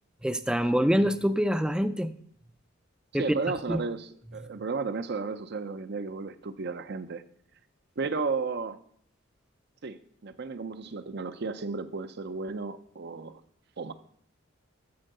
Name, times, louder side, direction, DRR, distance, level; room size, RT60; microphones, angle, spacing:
voice 1, 0.2-2.1 3.1-3.4 3.7-3.8, equal, 5° right, 12 dB, 0.4 m, -25 dB
voice 2, 3.2-7.2 8.0-8.8 9.8-13.3 13.8-13.9, right 4 dB, 55° right, 12 dB, 0.6 m, -33 dB
13.5 x 4.6 x 6.6 m, 0.63 s
head